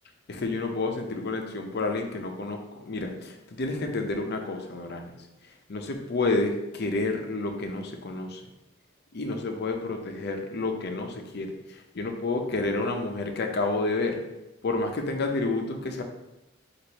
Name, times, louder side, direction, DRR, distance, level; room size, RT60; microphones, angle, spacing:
voice 1, 0.3-5.1 5.7-8.4 9.1-14.2 14.6-16.0, left 3 dB, 55° left, 4 dB, 0.6 m, -30 dB
4.7 x 2.5 x 4.0 m, 0.99 s
head